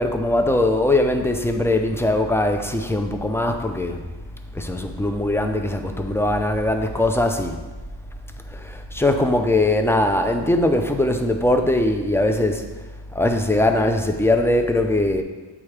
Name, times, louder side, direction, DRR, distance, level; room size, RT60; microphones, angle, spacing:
voice 1, 0.0-4.0 4.5-7.6 8.5-12.6 13.1-15.2, left 1 dB, 5° left, 5 dB, 0.4 m, -21 dB
8.3 x 3.6 x 3.3 m, 1.2 s
wide cardioid pair, 80°, 45 cm